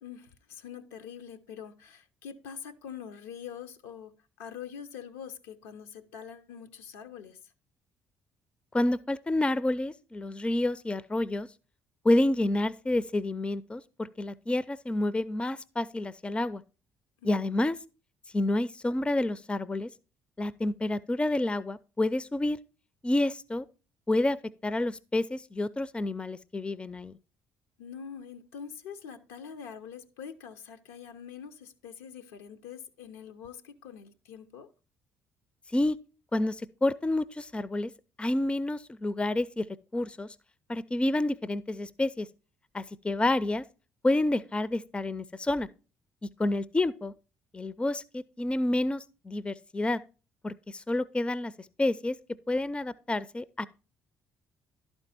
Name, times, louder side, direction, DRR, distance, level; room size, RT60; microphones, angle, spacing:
voice 1, 0.0-7.4 17.2-17.4 27.8-34.7, left 7 dB, 80° left, 0.6 m, -44 dB
voice 2, 8.7-11.5 12.0-16.6 17.2-17.8 18.3-19.9 20.4-22.6 23.0-23.7 24.1-24.4 24.6-27.2 35.7-36.0 36.3-37.9 38.2-39.7 39.9-40.3 40.7-42.3 42.7-43.6 44.0-45.7 46.2-47.1 47.5-50.0 50.4-51.5 51.8-52.2 52.5-53.7, left 1 dB, 15° left, 0.4 m, -29 dB
11.5 x 4.5 x 4.1 m
hypercardioid pair, 50°, 8 cm